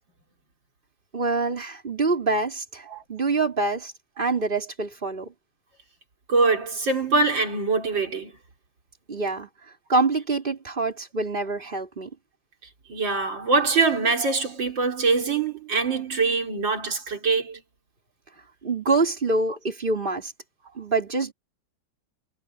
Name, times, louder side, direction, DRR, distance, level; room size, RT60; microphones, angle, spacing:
voice 1, 1.1-5.3 9.1-9.5 9.9-12.1 18.6-20.3 20.8-21.3, right 3 dB, 25° right, 4.1 m, -25 dB
voice 2, 6.3-8.3 12.9-17.6, right 4 dB, 85° right, 4.3 m, -23 dB
omnidirectional pair, 2.0 m